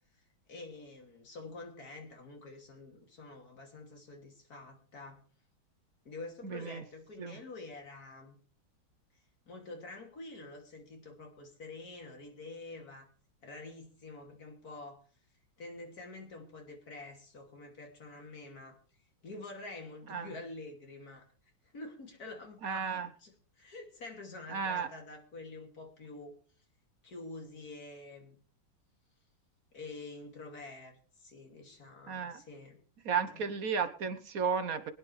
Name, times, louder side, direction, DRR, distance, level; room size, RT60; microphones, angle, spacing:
voice 1, 0.5-5.2 6.0-8.4 9.5-13.1 13.4-15.0 15.6-18.8 19.2-21.3 21.7-26.4 27.0-28.4 29.7-32.8 33.3-33.5, left 2 dB, 50° left, 2 dB, 3.1 m, -47 dB
voice 2, 6.4-6.8 7.2-7.3 20.1-20.3 22.6-23.1 24.5-24.9 32.1-32.4 33.0-34.9, right 6 dB, 55° right, 10 dB, 1.2 m, -33 dB
23.5 x 9.8 x 3.3 m, 0.41 s
omnidirectional pair, 2.2 m